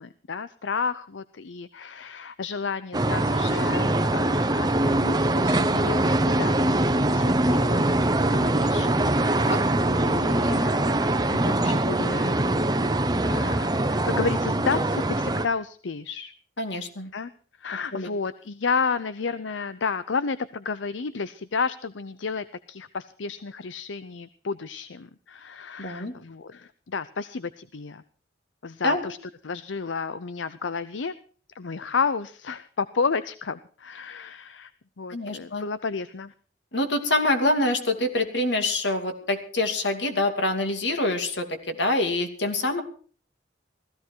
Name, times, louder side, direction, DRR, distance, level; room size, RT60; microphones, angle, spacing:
voice 1, 0.0-7.8 8.3-12.4 12.8-16.3 17.1-17.3 17.6-28.0 28.6-29.2 29.4-31.1 31.5-34.7 35.0-36.3, left 5 dB, 90° left, 15 dB, 0.7 m, -32 dB
sound 1, 2.9-15.5, right 1 dB, 20° right, 0.8 m, -23 dB
voice 2, 16.6-17.1 17.9-18.1 25.8-26.1 28.8-29.1 35.1-35.7 36.7-42.8, left 2 dB, 70° left, 6 dB, 2.7 m, -26 dB
16.5 x 15.0 x 4.6 m, 0.43 s
head